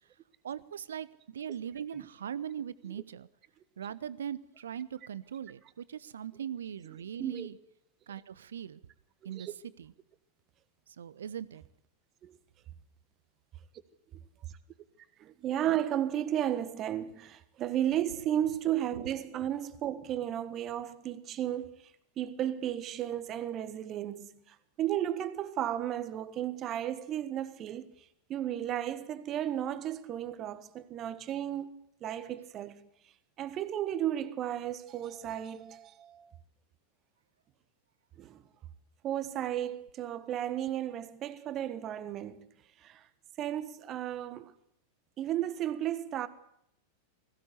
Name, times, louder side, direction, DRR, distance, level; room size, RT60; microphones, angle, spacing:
voice 1, 0.4-3.3 3.8-7.6 8.1-8.8 9.2-9.5 9.8-9.9 10.9-11.6, right 9 dB, 65° right, 0.8 m, -40 dB
voice 2, 15.2-21.7 22.2-27.9 28.3-31.7 32.0-32.9 33.4-36.3 38.2-38.4 39.0-42.5 42.8-43.1 43.4-44.5 45.2-46.3, right 11 dB, 30° right, 1.5 m, -34 dB
20.5 x 16.0 x 8.3 m
figure-of-eight pair, 90°, 0 cm